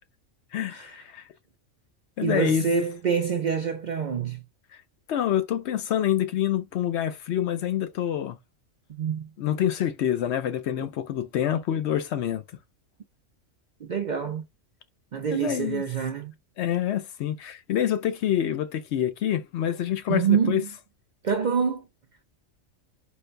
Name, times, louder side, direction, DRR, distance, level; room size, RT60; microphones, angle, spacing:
voice 1, 0.5-1.3 2.2-2.6 5.1-8.4 9.4-12.4 15.3-15.8 16.6-20.6, left 10 dB, 65° left, 0.8 m, -26 dB
voice 2, 2.2-4.4 9.0-9.3 13.8-14.4 15.1-16.3 20.1-20.7 21.2-21.9, right 7 dB, 55° right, 0.5 m, -26 dB
4.5 x 2.2 x 2.4 m
omnidirectional pair, 1.3 m